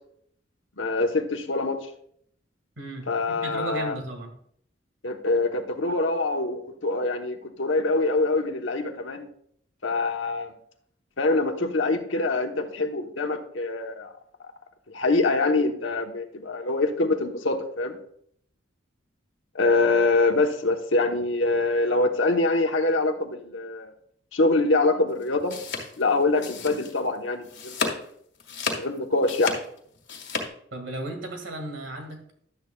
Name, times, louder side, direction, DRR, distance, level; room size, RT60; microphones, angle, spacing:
voice 1, 0.8-1.9 3.1-3.9 5.0-9.3 9.8-10.5 11.2-14.1 14.4-14.5 14.9-18.0 19.5-23.9 24.3-25.6 26.0-27.9 28.7-29.6, left 3 dB, 85° left, 4 dB, 1.1 m, -24 dB
voice 2, 2.8-4.3 30.7-32.3, right 1 dB, 80° right, 4 dB, 1.9 m, -35 dB
sound 1, 25.2-27.1 27.4-28.0 28.4-30.5, left 4 dB, 65° left, 2.0 m, -32 dB
12.0 x 8.7 x 2.3 m, 0.65 s
head